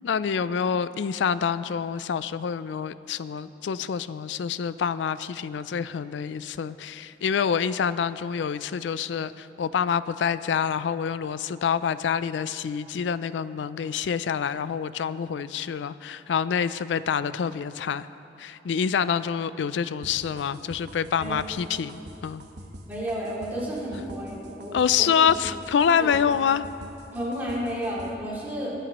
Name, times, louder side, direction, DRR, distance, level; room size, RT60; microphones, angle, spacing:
voice 1, 0.0-18.1 18.4-22.4 24.7-26.7, left 7 dB, 80° left, 15 dB, 0.4 m, -26 dB
sound 1, 20.0-28.1, equal, 65° right, 1.1 m, -44 dB
voice 2, 22.9-25.1 25.4-25.5 26.0-26.2 27.1-28.8, equal, 10° right, -7 dB, 2.6 m, -32 dB
22.0 x 9.0 x 3.0 m, 2.8 s
head